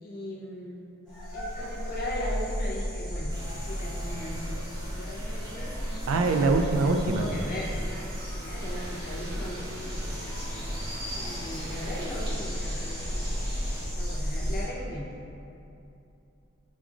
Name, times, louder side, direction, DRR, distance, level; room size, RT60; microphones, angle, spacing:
voice 1, 0.0-0.9 1.3-5.8 6.7-6.9 7.2-7.7 8.4-9.7 11.1-13.4 13.9-15.1, left 1 dB, 45° left, -4 dB, 0.6 m, -38 dB
sound 1, 1.1-14.6, equal, 5° left, 1.0 m, -34 dB
sound 2, 3.3-12.3, equal, 20° right, 0.7 m, -42 dB
voice 2, 6.1-7.3, right 3 dB, 80° right, 6 dB, 0.3 m, -23 dB
sound 3, 8.6-13.9, equal, 50° right, 0.7 m, -42 dB
5.2 x 2.4 x 2.4 m, 2.7 s
head